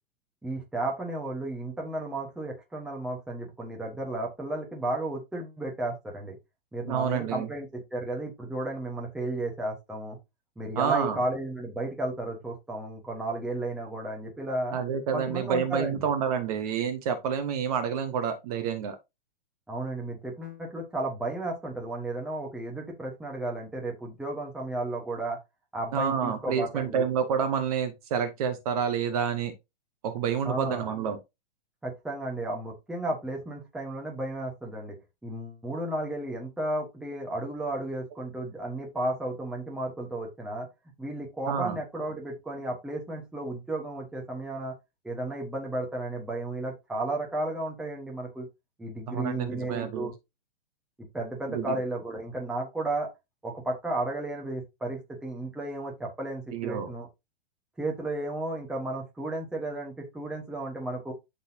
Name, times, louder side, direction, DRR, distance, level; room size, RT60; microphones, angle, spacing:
voice 1, 0.4-6.4 6.7-10.2 10.6-14.8 15.1-16.1 19.7-25.4 25.7-27.0 30.4-30.9 31.8-35.0 35.2-40.7 41.0-44.7 45.0-48.5 48.8-50.1 51.1-53.1 53.4-57.1 57.8-61.1, right 2 dB, ahead, 1.3 m, -33 dB
voice 2, 6.8-7.5 10.7-11.2 14.7-19.0 25.9-29.5 30.0-31.2 41.5-41.8 49.1-50.1 51.5-51.8 56.5-56.9, right 7 dB, 35° right, 1.1 m, -29 dB
11.5 x 4.1 x 2.8 m
hypercardioid pair, 165°, 31 cm